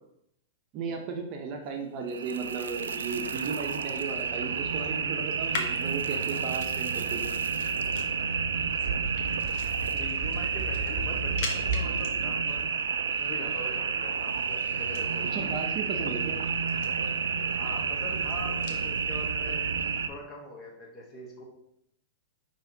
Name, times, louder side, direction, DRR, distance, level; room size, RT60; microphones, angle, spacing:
voice 1, 0.7-7.4 15.3-16.4, right 5 dB, 45° right, 2 dB, 0.7 m, -35 dB
sound 1, 2.1-20.1, right 6 dB, 90° right, 0.3 m, -30 dB
sound 2, 3.0-18.9, left 4 dB, 60° left, 0.7 m, -45 dB
sound 3, 8.5-12.0 12.3-12.4, right 4 dB, 20° right, 1.3 m, -33 dB
voice 2, 9.9-12.6 13.2-15.5 17.5-19.7 20.1-21.4, left 1 dB, 30° left, -1 dB, 1.3 m, -42 dB
5.6 x 3.1 x 2.8 m, 0.77 s
hypercardioid pair, 120°, 0 cm